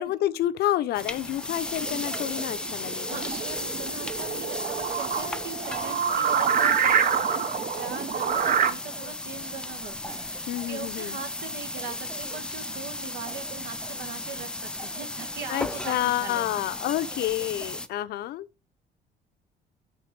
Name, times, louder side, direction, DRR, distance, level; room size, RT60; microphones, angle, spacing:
voice 1, 0.0-3.3 10.5-11.2 15.5-18.5, left 13 dB, 70° left, 0.6 m, -29 dB
sound 1, 0.9-17.9, left 2 dB, 5° left, 0.5 m, -35 dB
Cough, 1.6-3.1 3.3-4.6 5.1-5.9 6.1-6.3 6.5-8.1 8.3-8.7 8.9-9.6 10.1-11.3 11.7-12.8 13.2-14.5 14.8-15.5 15.9-16.4 17.0-17.9, right 3 dB, 20° right, 0.9 m, -47 dB
sound 2, 1.7-8.7, right 7 dB, 55° right, 0.8 m, -27 dB
voice 2, 3.1-16.6, right 6 dB, 80° right, 1.3 m, -41 dB
5.6 x 4.6 x 5.1 m
cardioid pair, 110°, 17 cm